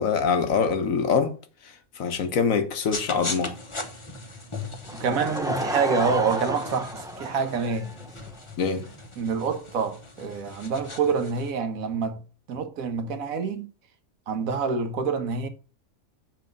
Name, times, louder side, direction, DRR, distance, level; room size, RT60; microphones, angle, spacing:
voice 1, 0.0-1.3 2.0-3.6 8.6-8.9, left 6 dB, 70° left, 1.4 m, -24 dB
sound 1, 2.9-11.5, left 3 dB, 25° left, 1.1 m, -38 dB
Laughter / Crowd, 4.8-8.4, equal, 5° right, 0.6 m, -32 dB
voice 2, 4.9-7.9 9.2-12.2 12.5-13.7 14.3-15.5, right 5 dB, 75° right, 1.4 m, -27 dB
7.8 x 4.3 x 5.3 m
omnidirectional pair, 1.5 m